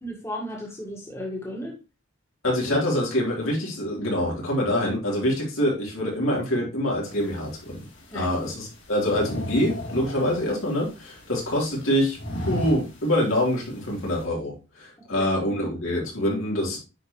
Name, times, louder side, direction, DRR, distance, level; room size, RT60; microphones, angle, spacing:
voice 1, 0.0-1.8 8.1-8.3 15.0-15.3, equal, 15° left, -2 dB, 1.8 m, -34 dB
voice 2, 2.4-7.8 8.1-12.2 12.5-14.5 15.1-16.8, left 1 dB, 80° left, -3 dB, 3.7 m, -25 dB
sound 1, 7.0-14.3, equal, 60° left, 3.2 m, -38 dB
9.5 x 4.7 x 3.2 m, 0.30 s
head